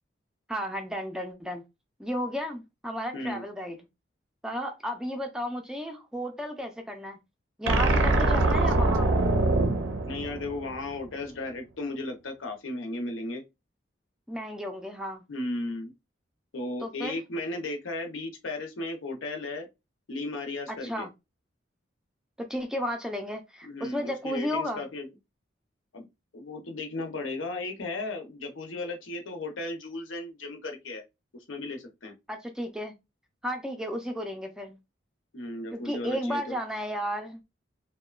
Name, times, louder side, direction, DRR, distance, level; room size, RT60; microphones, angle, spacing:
voice 1, 0.5-1.6 2.0-3.8 4.4-7.2 7.6-9.1 14.3-15.2 16.8-17.2 20.8-21.1 22.4-24.8 32.3-32.9 33.4-34.8 35.7-37.4, equal, 5° right, 0.3 m, -33 dB
voice 2, 3.1-3.4 7.8-8.4 10.1-13.4 15.3-15.9 16.5-19.7 20.1-21.1 23.6-25.1 25.9-26.1 26.3-31.0 31.5-32.1 35.3-36.6, left 2 dB, 85° left, 0.7 m, -35 dB
sound 1, 7.6-11.0, right 2 dB, 75° right, 0.5 m, -24 dB
2.8 x 2.1 x 2.3 m
head